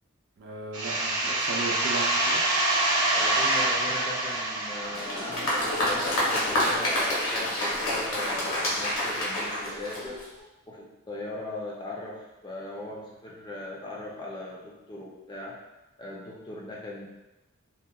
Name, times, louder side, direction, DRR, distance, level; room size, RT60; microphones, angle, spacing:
voice 1, 0.4-2.4, right 3 dB, 50° right, -1 dB, 0.4 m, -36 dB
sound 1, 0.7-6.2, right 2 dB, 90° right, 0.7 m, -26 dB
voice 2, 3.1-10.2 10.7-15.5 16.0-17.1, left 2 dB, 20° left, -4 dB, 0.3 m, -39 dB
Applause, 4.8-10.4, left 1 dB, 70° left, 0.7 m, -28 dB
2.8 x 2.0 x 2.2 m, 1.0 s
head